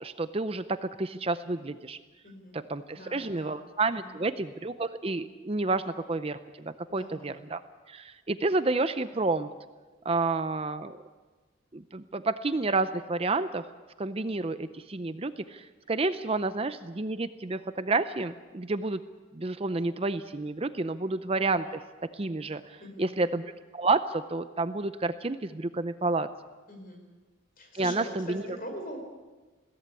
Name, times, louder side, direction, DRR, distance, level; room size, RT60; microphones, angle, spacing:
voice 1, 0.0-2.0 2.5-7.6 7.9-9.5 10.0-11.0 11.7-13.6 14.0-19.0 19.3-21.8 22.1-23.5 23.7-26.3 27.7-28.4, right 3 dB, 30° right, 11 dB, 0.6 m, -30 dB
voice 2, 2.2-2.6 2.9-3.6 3.9-4.2 6.9-7.4 22.8-23.2 26.7-27.0 27.6-29.0, equal, 45° left, 4 dB, 4.9 m, -42 dB
21.5 x 16.5 x 8.3 m, 1.3 s
head